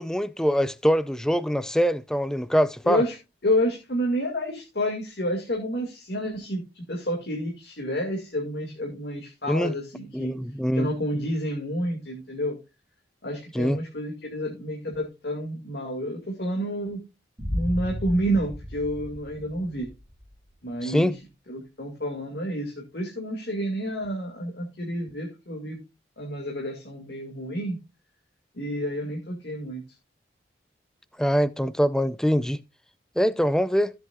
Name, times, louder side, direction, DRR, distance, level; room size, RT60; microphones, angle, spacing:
voice 1, 0.0-3.0 9.5-9.7 10.1-10.9 13.5-13.8 20.8-21.2 31.2-32.6 33.2-33.9, equal, 5° left, 0.4 m, -23 dB
voice 2, 2.8-3.2 3.4-10.3 10.7-12.6 13.2-17.0 17.5-19.9 20.6-21.1 21.5-25.8 26.2-27.8 28.6-29.8, equal, 60° left, 2.2 m, -29 dB
Boom, 17.4-20.3, equal, 20° right, 2.3 m, -34 dB
15.5 x 7.8 x 2.4 m
head